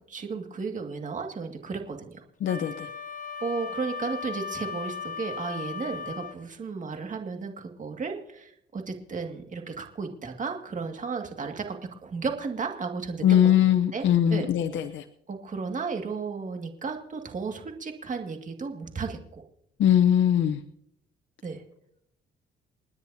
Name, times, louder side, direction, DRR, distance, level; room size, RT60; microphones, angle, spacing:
voice 1, 0.0-2.2 3.4-11.8 12.0-13.2 13.9-14.5 15.3-19.4 21.4-21.6, right 4 dB, 40° right, 4 dB, 2.1 m, -34 dB
voice 2, 2.4-2.9 13.2-15.0 19.8-20.6, left 10 dB, 70° left, 7 dB, 0.8 m, -21 dB
Wind instrument woodwind instrument, 2.4-6.4, left 6 dB, 40° left, 1.6 m, -37 dB
29.5 x 9.8 x 2.8 m, 0.73 s
cardioid pair, 90°, 20 cm